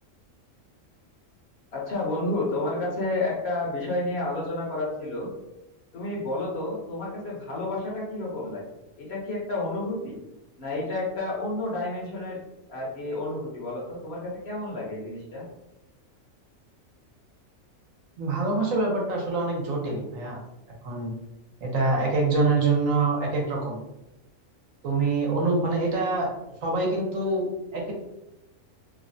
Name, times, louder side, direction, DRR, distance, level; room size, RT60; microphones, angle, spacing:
voice 1, 1.7-5.3 5.9-8.6 9.0-10.2 10.6-12.4 12.7-15.4, left 2 dB, 55° left, -4 dB, 1.0 m, -30 dB
voice 2, 18.2-20.4 20.8-21.1 21.6-23.8 24.8-26.3 26.6-27.4 27.7-27.9, right 3 dB, 75° right, -1 dB, 1.1 m, -25 dB
3.1 x 2.1 x 2.5 m, 0.93 s
omnidirectional pair, 1.4 m